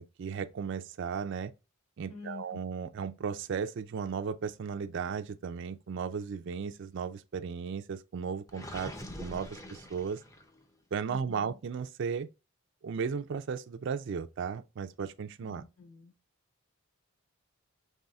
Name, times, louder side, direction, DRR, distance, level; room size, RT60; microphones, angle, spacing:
voice 1, 0.0-1.5 2.0-8.9 9.2-10.2 10.9-12.3 12.8-15.6, right 6 dB, 55° right, 0.3 m, -35 dB
voice 2, 2.1-2.6 11.1-11.6 15.4-16.1, left 5 dB, 70° left, 1.4 m, -48 dB
Gurgling, 8.5-10.6, left 1 dB, 15° left, 0.5 m, -44 dB
5.4 x 3.3 x 2.3 m
head